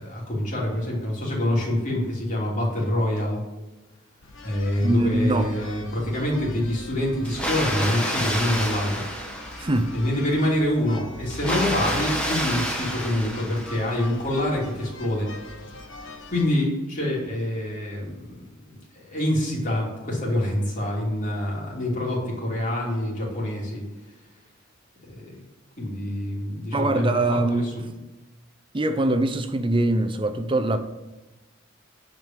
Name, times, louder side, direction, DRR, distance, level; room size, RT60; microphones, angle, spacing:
voice 1, 0.0-3.4 4.4-9.1 9.9-15.3 16.3-18.3 18.9-23.8 25.0-25.4 25.8-27.9, left 1 dB, 40° left, 3.2 m, -26 dB
sound 1, 4.2-16.5, left 2 dB, 70° left, 1.3 m, -41 dB
voice 2, 4.8-5.5 9.6-9.9 26.7-27.7 28.7-30.8, right 2 dB, 25° right, 0.6 m, -23 dB
Water, 7.2-10.1 11.3-14.1, equal, 5° left, 1.4 m, -29 dB
9.4 x 5.2 x 7.4 m
head